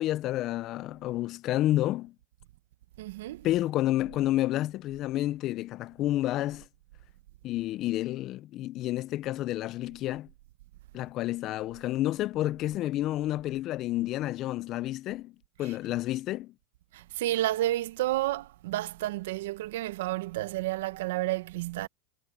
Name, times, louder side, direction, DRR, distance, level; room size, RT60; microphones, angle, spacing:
voice 1, 0.0-2.1 3.4-6.7 7.4-10.3 10.9-15.3 15.6-16.5, left 15 dB, 45° left, 0.4 m, -30 dB
voice 2, 3.0-3.5 15.6-15.7 16.9-21.9, right 15 dB, 80° right, 0.7 m, -31 dB
supercardioid pair, 135°, 0 cm